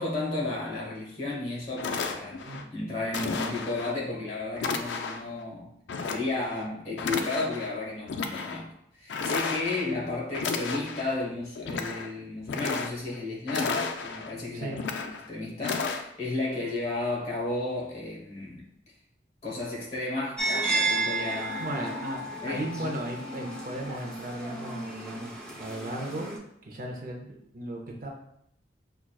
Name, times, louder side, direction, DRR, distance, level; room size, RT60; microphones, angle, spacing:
voice 1, 0.0-5.7 6.0-14.8 15.0-18.7 19.4-21.7 22.4-23.0, left 2 dB, 35° left, -3 dB, 1.1 m, -33 dB
sound 1, 1.3-1.4 1.8-2.6 3.1-3.9 4.6-5.3 5.9-6.7 7.0-7.7 8.1-8.6 9.1-9.9 10.3-11.1 11.5-12.1 12.4-13.2 13.5-14.3 14.7-15.3 15.6-16.0, left 4 dB, 70° left, 0.3 m, -33 dB
voice 2, 2.3-2.7 14.5-14.8 21.4-25.3 25.6-26.3 26.6-28.1, right 1 dB, 45° right, 0 dB, 0.5 m, -36 dB
sound 2, 20.4-26.4, right 2 dB, 5° left, 0.4 m, -32 dB
5.9 x 2.3 x 2.3 m, 0.74 s
head